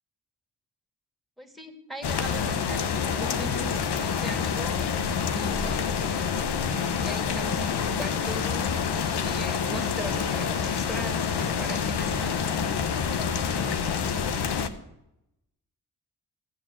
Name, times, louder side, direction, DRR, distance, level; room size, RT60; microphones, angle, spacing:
voice 1, 1.4-6.2 7.0-12.5, right 1 dB, ahead, 3 dB, 2.3 m, -40 dB
sound 1, 2.0-14.7, left 6 dB, 85° left, 1.0 m, -27 dB
16.0 x 7.8 x 7.6 m, 0.86 s
cardioid pair, 55°, 39 cm